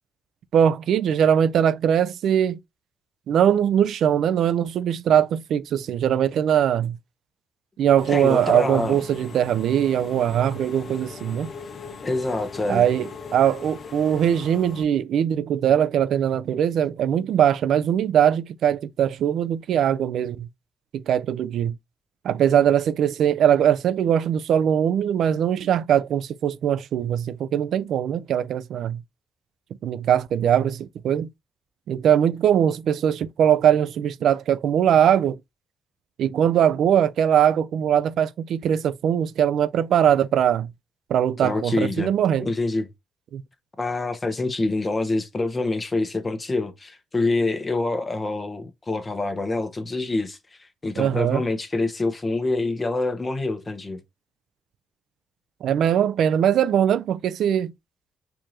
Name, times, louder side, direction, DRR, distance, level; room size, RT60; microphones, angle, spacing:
voice 1, 0.5-2.6 3.3-7.0 7.8-11.5 12.7-20.5 20.9-21.7 22.2-29.0 29.8-31.3 31.9-35.4 36.2-40.7 41.1-42.5 43.3-43.4 51.0-51.4 55.6-57.7, right 9 dB, 70° right, 0.3 m, -21 dB
Engine / Mechanisms, 8.0-14.8, left 5 dB, 50° left, 0.6 m, -40 dB
voice 2, 8.1-9.0 12.0-12.8 41.4-42.1 42.4-42.9 43.8-54.0, left 2 dB, 25° left, 0.8 m, -26 dB
4.6 x 2.5 x 2.9 m
cardioid pair, 90°, 0 cm